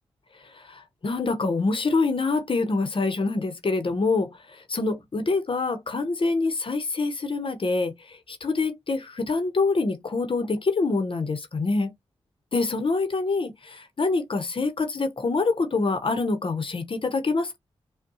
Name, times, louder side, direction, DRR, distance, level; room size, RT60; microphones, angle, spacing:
voice 1, 0.5-11.9 12.5-17.6, left 3 dB, 50° left, 0.8 m, -26 dB
5.1 x 2.1 x 2.7 m
cardioid pair, 45°, 11 cm